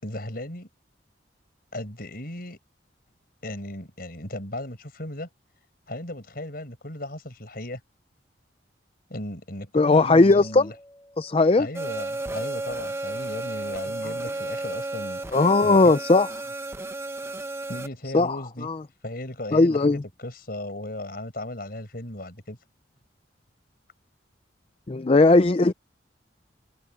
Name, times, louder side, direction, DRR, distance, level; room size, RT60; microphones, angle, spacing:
voice 1, 0.0-0.7 1.7-2.6 3.4-5.3 5.9-7.8 9.1-10.7 11.6-16.1 17.7-18.7 19.0-22.6, left 1 dB, 55° left, 6.3 m, -36 dB
voice 2, 9.7-10.7 11.2-11.7 15.3-16.3 18.1-18.4 18.6-18.8 19.5-20.0 24.9-25.7, left 3 dB, 30° left, 0.4 m, -18 dB
sound 1, 10.3-12.2, left 1 dB, 15° left, 5.5 m, -51 dB
sound 2, 11.7-17.9, right 2 dB, 15° right, 1.1 m, -33 dB
head